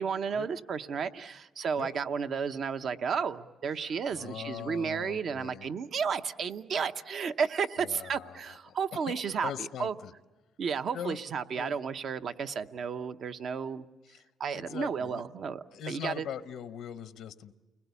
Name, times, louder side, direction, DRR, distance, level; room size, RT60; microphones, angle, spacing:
voice 1, 0.0-9.9 10.6-13.8 14.4-16.3, right 6 dB, 60° right, 9 dB, 0.8 m, -33 dB
voice 2, 3.8-5.7 7.8-8.8 9.1-9.2 9.4-10.1 10.9-11.2 11.5-11.8 14.1-14.3 14.5-15.2 15.7-17.5, left 9 dB, 85° left, 12 dB, 0.8 m, -41 dB
30.0 x 21.0 x 8.3 m, 1.2 s
cardioid pair, 90°, 0 cm